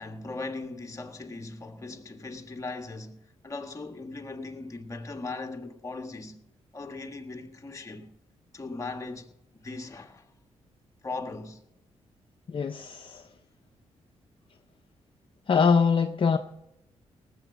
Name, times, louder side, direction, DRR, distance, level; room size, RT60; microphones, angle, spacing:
voice 1, 0.0-3.2 3.4-6.4 6.7-8.1 8.5-10.3 11.0-11.6, left 3 dB, 25° left, 1.5 m, -38 dB
voice 2, 12.5-13.3 15.5-16.4, left 5 dB, 45° left, 0.7 m, -23 dB
18.5 x 8.0 x 6.5 m
cardioid pair, 85°, 12 cm